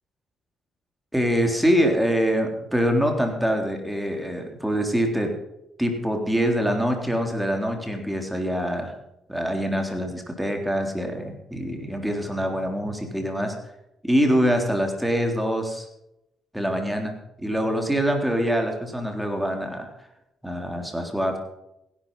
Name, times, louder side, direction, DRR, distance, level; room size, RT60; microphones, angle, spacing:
voice 1, 1.1-5.3 5.8-8.9 9.3-13.5 14.0-15.9 16.5-17.1 17.4-19.9 20.4-21.4, equal, 5° right, 3 dB, 3.7 m, -24 dB
16.5 x 11.5 x 5.6 m, 0.84 s
cardioid pair, 90°, 0 cm